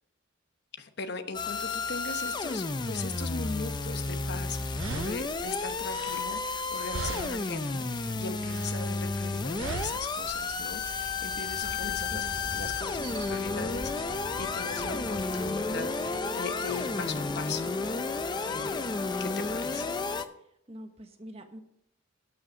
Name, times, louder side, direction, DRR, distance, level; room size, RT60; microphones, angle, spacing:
voice 1, 0.8-12.2 12.5-19.9, left 4 dB, 55° left, 8 dB, 1.0 m, -39 dB
sound 1, 1.3-20.2, left 3 dB, 20° left, 0.5 m, -32 dB
sound 2, 4.2-4.3 4.7-6.7 6.9-7.6 7.9-8.9 9.5-10.2, right 5 dB, 75° right, 0.5 m, -39 dB
sound 3, 5.1-16.2, right 1 dB, 60° right, 5.3 m, -46 dB
voice 2, 11.8-12.6 20.7-21.6, right 1 dB, 30° right, 6 dB, 1.1 m, -46 dB
12.0 x 6.3 x 6.2 m, 0.77 s
head